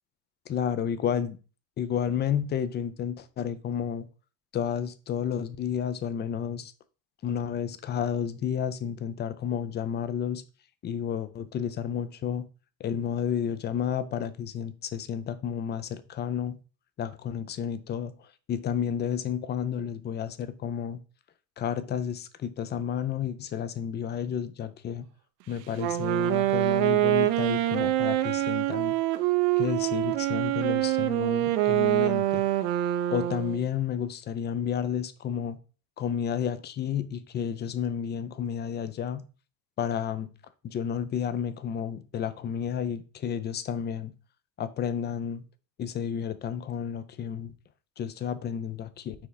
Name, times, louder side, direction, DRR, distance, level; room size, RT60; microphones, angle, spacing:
voice 1, 0.5-1.4 1.8-4.1 4.5-6.7 7.2-10.4 10.8-12.5 12.8-16.6 17.0-21.0 21.6-25.1 25.5-28.9 29.6-32.4 33.1-35.6 36.0-39.2 39.8-40.3 40.6-44.1 44.6-45.4 45.8-47.5 48.0-49.2, left 8 dB, 20° left, 0.4 m, -31 dB
Wind instrument woodwind instrument, 25.8-33.6, right 14 dB, 75° right, 0.9 m, -25 dB
5.9 x 4.1 x 3.9 m
supercardioid pair, 105°, 50 cm